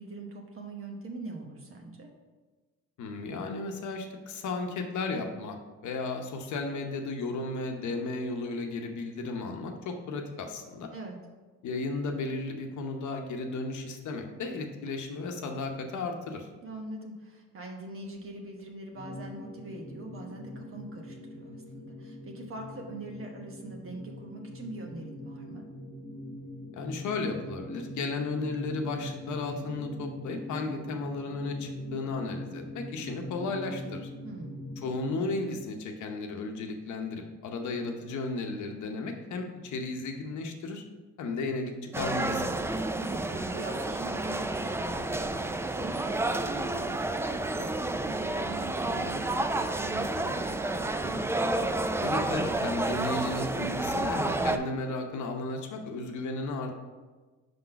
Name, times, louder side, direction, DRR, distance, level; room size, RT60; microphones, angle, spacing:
voice 1, 0.0-2.1 10.9-11.2 16.6-25.6 34.2-34.7 42.9-51.2, right 2 dB, 45° right, 1 dB, 1.1 m, -43 dB
voice 2, 3.0-5.6 5.8-10.9 11.6-16.5 26.7-34.1 34.8-40.8 41.2-42.6 52.0-56.7, left 3 dB, 75° left, 4 dB, 0.8 m, -34 dB
sound 1, 18.9-35.5, left 1 dB, 50° left, 1.0 m, -42 dB
sound 2, 41.9-54.6, right 2 dB, 10° right, 0.3 m, -30 dB
5.2 x 3.9 x 5.7 m, 1.3 s
cardioid pair, 90°, 30 cm